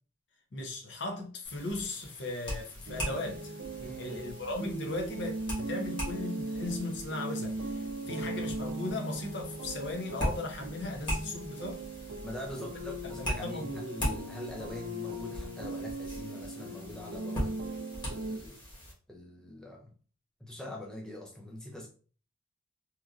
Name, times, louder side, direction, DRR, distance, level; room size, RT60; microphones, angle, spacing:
voice 1, 0.5-3.5 4.0-11.8 12.5-12.7 13.2-13.8, left 2 dB, 60° left, 0.6 m, -37 dB
sound 1, 1.4-18.9, equal, 25° left, 1.1 m, -40 dB
sound 2, 2.9-18.4, right 2 dB, 80° right, 0.4 m, -39 dB
voice 2, 3.8-4.2 8.0-8.4 12.2-17.7 18.1-18.6 19.1-19.9 20.4-21.9, left 1 dB, 5° left, 0.3 m, -43 dB
3.0 x 2.4 x 2.3 m
head